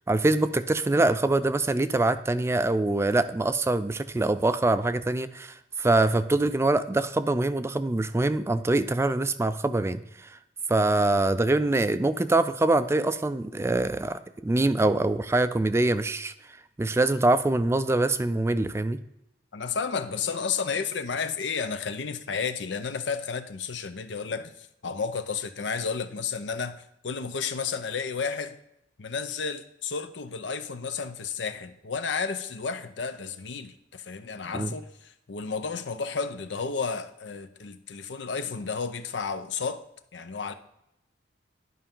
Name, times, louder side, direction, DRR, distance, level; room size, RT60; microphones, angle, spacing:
voice 1, 0.1-10.4 10.7-16.3 16.8-19.0 34.5-34.7, right 2 dB, 15° right, 0.3 m, -24 dB
voice 2, 19.5-28.6 29.0-39.8 40.1-40.5, left 5 dB, 80° left, 0.7 m, -32 dB
11.0 x 5.4 x 3.7 m
head